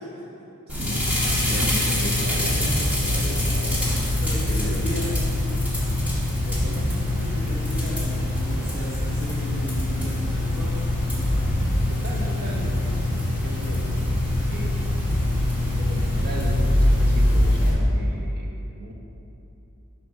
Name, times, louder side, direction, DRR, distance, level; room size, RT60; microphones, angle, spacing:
sound 1, 0.7-17.7, left 1 dB, 5° right, 1.7 m, -23 dB
voice 1, 0.7-3.9 4.3-4.9 6.5-6.9 11.9-13.9 14.5-14.8 15.6-18.9, right 1 dB, 50° right, -1 dB, 1.0 m, -37 dB
voice 2, 4.2-5.2 7.2-10.8 11.1-11.3, equal, 80° right, -10 dB, 1.8 m, -35 dB
7.0 x 5.1 x 5.4 m, 2.9 s
head